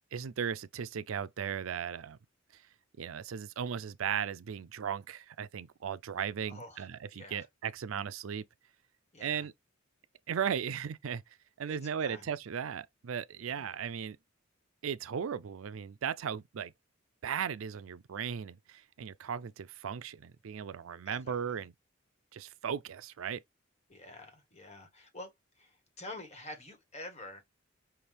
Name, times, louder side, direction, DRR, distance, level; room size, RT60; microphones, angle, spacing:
voice 1, 0.1-2.2 2.5-2.6 3.0-8.4 9.2-9.5 10.3-11.2 11.6-14.2 14.8-16.7 17.2-21.7 22.3-23.4, right 7 dB, 85° right, 0.4 m, -36 dB
voice 2, 6.4-7.4 9.1-9.5 11.7-12.3 13.5-13.7 21.0-21.4 23.9-27.4, left 2 dB, 35° left, 1.6 m, -48 dB
5.7 x 2.6 x 3.3 m
head